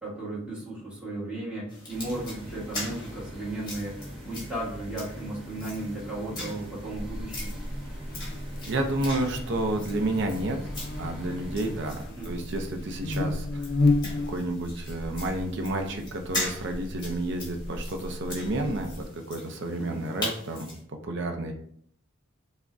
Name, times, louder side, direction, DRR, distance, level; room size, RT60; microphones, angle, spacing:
voice 1, 0.0-7.6 12.1-12.3 19.8-20.1, right 2 dB, 5° right, -7 dB, 1.2 m, -35 dB
sound 1, 1.7-20.8, left 1 dB, 20° left, 1.2 m, -41 dB
sound 2, 1.9-12.1, equal, 25° right, 0.8 m, -42 dB
Buzz, 6.9-19.0, left 2 dB, 45° left, 0.4 m, -33 dB
voice 2, 8.7-10.6 11.0-13.7 14.3-20.7 21.0-21.5, right 1 dB, 55° right, 4 dB, 0.5 m, -30 dB
5.8 x 2.1 x 2.5 m, 0.64 s
head